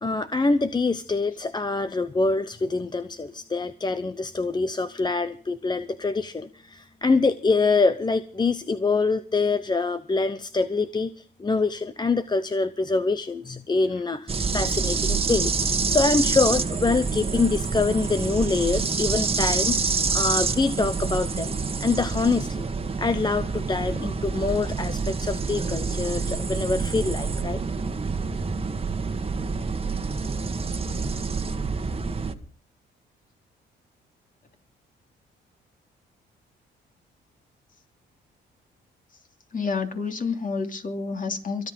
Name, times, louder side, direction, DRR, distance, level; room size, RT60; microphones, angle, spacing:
voice 1, 0.0-21.5 21.8-22.7 23.0-27.6, left 3 dB, 20° left, 12 dB, 0.8 m, -25 dB
sound 1, 14.3-32.3, right 4 dB, 30° right, 1.6 m, -27 dB
voice 2, 39.5-41.7, left 4 dB, 40° left, 5 dB, 2.9 m, -29 dB
23.5 x 9.3 x 5.4 m, 0.43 s
cardioid pair, 90°, 20 cm